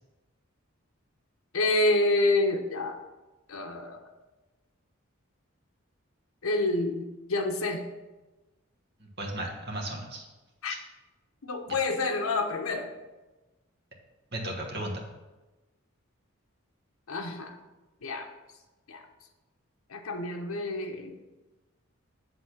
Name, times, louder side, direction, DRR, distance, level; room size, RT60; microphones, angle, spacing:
voice 1, 1.5-3.0 3.5-4.1 6.4-7.9 10.6-10.8 11.4-12.9 17.1-17.6 18.0-18.3 18.9-19.0 19.9-21.2, left 2 dB, 85° left, 5 dB, 0.8 m, -28 dB
voice 2, 9.0-10.2 10.6-10.8 11.7-11.8 14.3-15.0, right 1 dB, 50° right, 0 dB, 1.3 m, -35 dB
8.1 x 3.8 x 5.8 m, 1.1 s
head